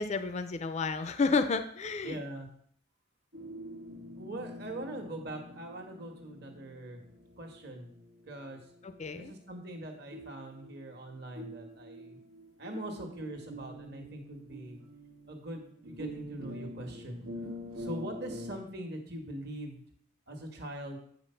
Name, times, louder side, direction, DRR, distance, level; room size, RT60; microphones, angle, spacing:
voice 1, 0.0-2.2 8.8-9.3, left 4 dB, 30° left, 10 dB, 0.4 m, -31 dB
voice 2, 2.0-2.5 4.2-7.0 7.4-7.9 8.3-8.6 9.1-12.2 12.6-14.8 15.3-17.2 17.8-19.8 20.3-21.0, right 1 dB, 50° right, 3 dB, 1.4 m, -42 dB
sound 1, 3.3-18.6, equal, 90° right, 1.4 m, -46 dB
8.3 x 5.1 x 5.6 m, 0.64 s
head